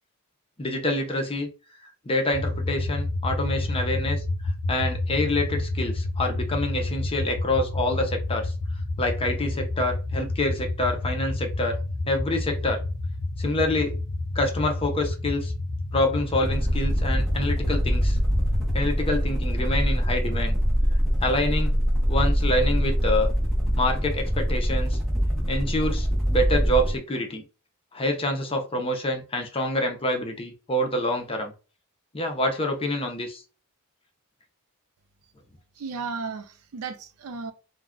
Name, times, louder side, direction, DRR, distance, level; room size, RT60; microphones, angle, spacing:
voice 1, 0.6-1.5 2.0-4.2 4.7-8.5 9.0-11.8 12.0-12.8 13.4-14.0 14.3-15.5 15.9-18.2 18.7-20.6 21.2-21.7 22.1-23.3 23.8-25.0 25.5-27.4 27.9-31.5 32.1-33.4, left 1 dB, 25° left, 0.5 m, -26 dB
sound 1, 2.3-18.8, left 2 dB, 30° right, 1.5 m, -29 dB
sound 2, 16.3-27.0, equal, ahead, 0.8 m, -24 dB
voice 2, 35.8-37.5, right 4 dB, 70° right, 0.5 m, -34 dB
2.3 x 2.2 x 3.6 m
head